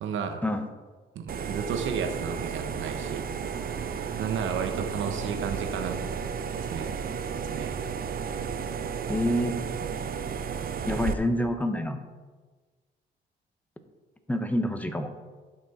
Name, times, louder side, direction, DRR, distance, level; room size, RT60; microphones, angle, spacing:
voice 1, 0.0-0.4 1.1-3.3 4.1-6.0 6.7-6.9 7.4-7.7, right 6 dB, 75° right, 6 dB, 1.2 m, -32 dB
sound 1, 1.3-11.1, right 6 dB, 45° right, 0.7 m, -33 dB
voice 2, 9.1-9.6 10.8-12.0 14.3-15.1, left 1 dB, 10° left, 7 dB, 1.0 m, -27 dB
11.0 x 6.0 x 4.3 m, 1.4 s
cardioid pair, 90°, 20 cm